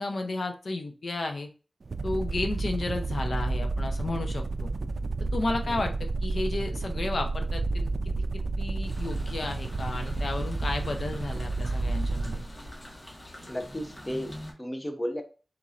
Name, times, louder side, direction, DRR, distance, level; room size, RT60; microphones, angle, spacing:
voice 1, 0.0-1.5 2.0-4.7 5.3-7.9 8.3-12.4, left 2 dB, 75° left, 5 dB, 0.7 m, -33 dB
sound 1, 1.8-12.5, right 3 dB, 65° right, 0.3 m, -30 dB
sound 2, 8.8-14.5, left 1 dB, 40° left, 1.3 m, -45 dB
voice 2, 13.5-15.2, equal, 20° left, 5 dB, 0.8 m, -34 dB
4.4 x 4.1 x 2.4 m, 0.34 s
wide cardioid pair, 75°, 0 cm